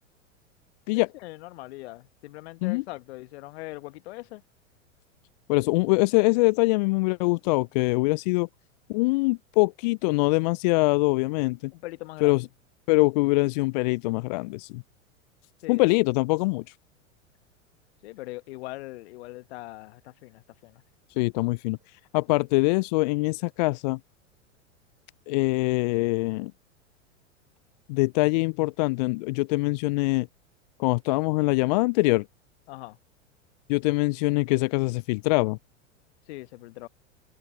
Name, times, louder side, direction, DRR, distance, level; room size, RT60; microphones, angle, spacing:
voice 1, 0.9-4.4 11.7-12.4 15.6-15.9 18.0-20.8 32.7-33.0 36.3-36.9, left 20 dB, 55° left, 1.3 m, -41 dB
voice 2, 5.5-8.5 8.9-11.7 12.2-12.4 12.9-14.8 15.7-16.6 21.2-21.8 22.1-24.0 25.3-26.5 27.9-30.3 30.8-32.2 33.7-35.6, left 24 dB, 35° left, 0.4 m, -23 dB
figure-of-eight pair, 95°, 39 cm